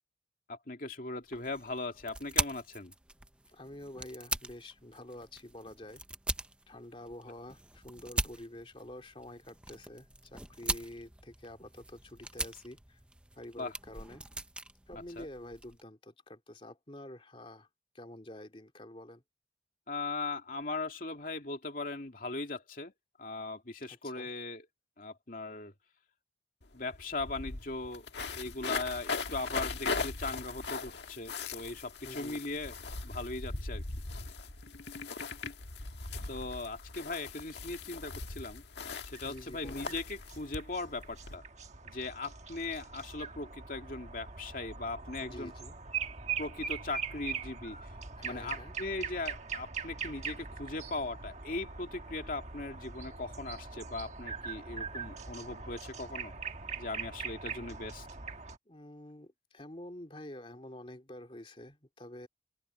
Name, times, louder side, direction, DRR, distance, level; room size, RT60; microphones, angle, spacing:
voice 1, 0.5-2.9 13.6-13.7 15.2-15.3 19.9-22.9 23.2-24.6 25.0-25.7 26.7-28.1 28.4-32.7 33.0-33.8 36.3-38.6 39.0-41.4 41.9-45.5 46.4-47.8 48.2-56.3 56.8-58.1, left 3 dB, 50° left, 2.6 m, -39 dB
sound 1, 1.3-15.8, right 2 dB, 5° right, 0.6 m, -41 dB
voice 2, 3.5-6.0 6.7-13.0 13.4-14.2 14.9-17.7 17.9-19.2 23.9-24.3 32.0-32.6 39.2-39.9 45.2-45.7 48.2-48.7 58.7-62.3, left 1 dB, 30° left, 2.8 m, -48 dB
sound 2, 26.6-26.7 26.9-41.4, left 4 dB, 70° left, 1.6 m, -40 dB
sound 3, 39.1-58.6, right 6 dB, 40° right, 1.3 m, -42 dB
open air
head